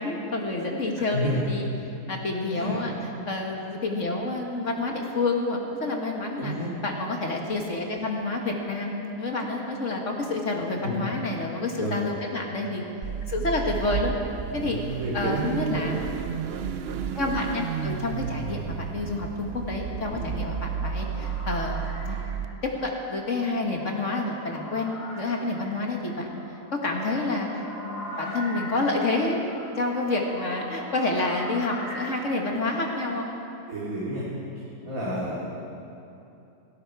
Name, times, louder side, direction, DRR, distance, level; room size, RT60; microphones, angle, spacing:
voice 1, 0.0-1.7 2.1-2.9 3.3-6.5 6.8-12.8 13.3-14.1 14.5-14.8 15.1-15.9 17.2-22.2 22.6-26.3 26.7-29.4 29.8-33.3, left 2 dB, 50° left, 1 dB, 1.7 m, -28 dB
voice 2, 1.1-1.6 2.5-2.8 6.4-6.7 10.8-11.0 11.8-12.0 13.7-13.8 15.0-15.4 20.1-20.3 33.7-34.3 34.8-35.5, equal, 55° right, -7 dB, 2.8 m, -30 dB
Car / Idling / Accelerating revving vroom, 13.0-22.5, right 7 dB, 75° right, 0.5 m, -32 dB
sound 1, 19.6-33.0, left 1 dB, 65° left, 3.2 m, -42 dB
17.5 x 16.0 x 4.7 m, 2.8 s
omnidirectional pair, 1.8 m